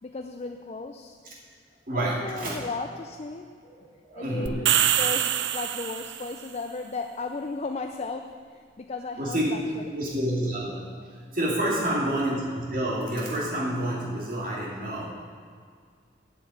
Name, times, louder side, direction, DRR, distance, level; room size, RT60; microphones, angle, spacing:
voice 1, 0.0-1.2 1.9-3.5 4.1-10.0 11.7-12.2, left 3 dB, 35° left, 5 dB, 0.4 m, -36 dB
voice 2, 1.9-2.7 4.1-4.8 9.2-9.5 9.9-15.1, right 1 dB, 50° right, -5 dB, 2.7 m, -28 dB
sound 1, 4.5-6.4, right 10 dB, 70° right, 0.5 m, -24 dB
8.2 x 8.0 x 8.0 m, 2.1 s
head